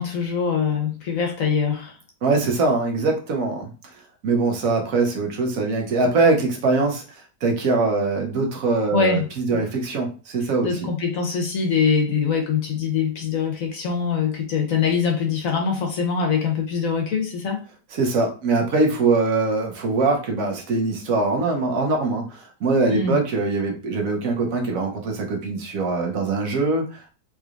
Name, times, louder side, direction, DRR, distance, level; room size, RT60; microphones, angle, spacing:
voice 1, 0.0-2.0 8.9-9.6 10.6-17.6 22.9-23.2, left 6 dB, 60° left, 2 dB, 1.1 m, -23 dB
voice 2, 2.2-3.7 4.2-7.0 7.4-10.9 17.9-27.1, right 3 dB, 60° right, 2 dB, 1.2 m, -22 dB
3.8 x 3.1 x 2.5 m, 0.35 s
omnidirectional pair, 1.8 m